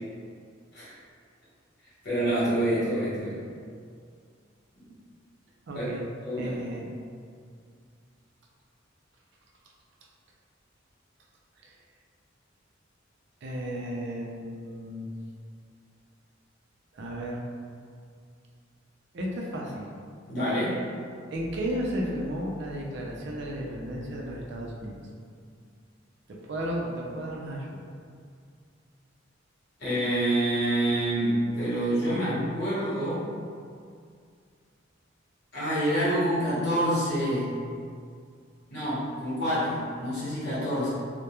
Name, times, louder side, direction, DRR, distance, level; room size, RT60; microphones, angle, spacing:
voice 1, 2.0-3.4 5.7-5.8 6.2-6.5 20.3-20.8 29.8-33.3 35.5-37.6 38.7-40.9, right 1 dB, 60° left, -11 dB, 1.1 m, -27 dB
voice 2, 5.7-6.1 6.4-6.9 11.6-11.8 13.4-15.1 16.9-17.4 19.1-19.9 21.3-25.0 26.3-27.8, equal, 60° right, -2 dB, 0.4 m, -34 dB
2.3 x 2.1 x 2.9 m, 2.2 s
head